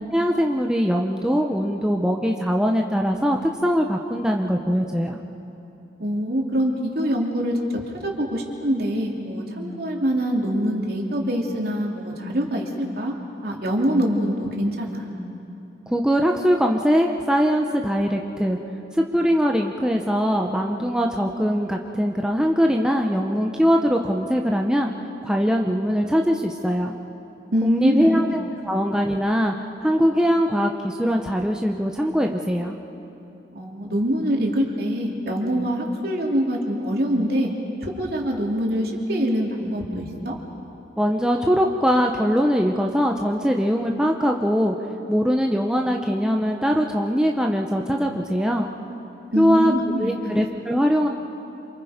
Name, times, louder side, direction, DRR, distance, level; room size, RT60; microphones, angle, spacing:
voice 1, 0.1-5.2 15.9-18.6 18.9-24.9 25.2-26.9 27.6-29.5 29.8-32.7 41.0-44.7 45.1-48.7 49.4-49.7 50.0-51.1, equal, 5° right, 1 dB, 0.9 m, -21 dB
voice 2, 6.0-13.1 13.4-15.1 27.5-28.2 33.5-37.5 37.8-40.4 49.3-50.1, equal, 60° right, -1 dB, 3.2 m, -24 dB
28.0 x 27.5 x 5.2 m, 2.9 s
head